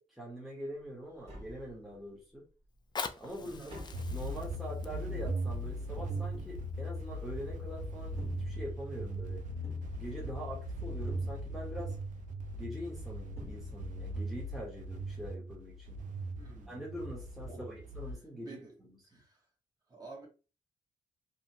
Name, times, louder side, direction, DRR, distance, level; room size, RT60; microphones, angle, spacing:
voice 1, 0.0-2.4 3.2-3.7 4.1-9.4 9.9-12.0 12.5-16.0 16.7-17.7 17.9-18.9, equal, ahead, 0.9 m, -44 dB
Tap, 1.1-2.2 2.6-7.4 8.0-9.1 9.6-10.6 11.1-11.9 12.9-13.0 13.3-14.2 14.4-14.5, left 1 dB, 50° right, 1.5 m, -51 dB
Fire, 2.7-7.7 8.3-8.4, left 5 dB, 30° left, 0.4 m, -45 dB
voice 2, 3.4-3.8 16.4-16.8 17.5-17.8 18.1-19.5 19.9-20.3, right 3 dB, 30° right, 1.3 m, -51 dB
sound 1, 3.9-18.1, right 1 dB, 65° right, 0.5 m, -39 dB
2.8 x 2.1 x 2.7 m
cardioid pair, 65°, 14 cm